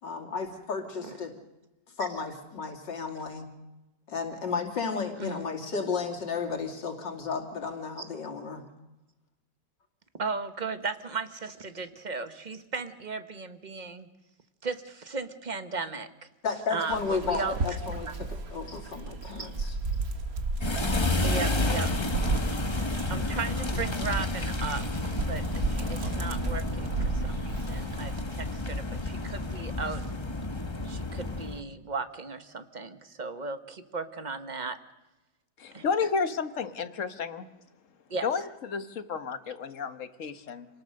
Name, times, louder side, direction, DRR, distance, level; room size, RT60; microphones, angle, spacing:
voice 1, 0.0-1.3 2.0-3.4 4.1-8.6 16.4-19.7, left 5 dB, 90° left, 2 dB, 3.3 m, -33 dB
voice 2, 10.2-14.1 14.6-16.1 16.7-17.8 19.4-19.5 21.2-21.9 23.1-24.8 25.3-30.1 30.8-34.8 35.7-35.8 38.1-38.3, right 4 dB, 30° right, 10 dB, 1.2 m, -36 dB
Dog, 16.9-28.2, right 3 dB, 55° right, 2.0 m, -34 dB
sound 1, 20.6-31.6, left 2 dB, 20° left, 1.1 m, -31 dB
voice 3, 35.6-37.5 38.2-40.7, left 5 dB, 50° left, 10 dB, 1.5 m, -31 dB
27.0 x 19.0 x 6.5 m, 1.0 s
omnidirectional pair, 1.9 m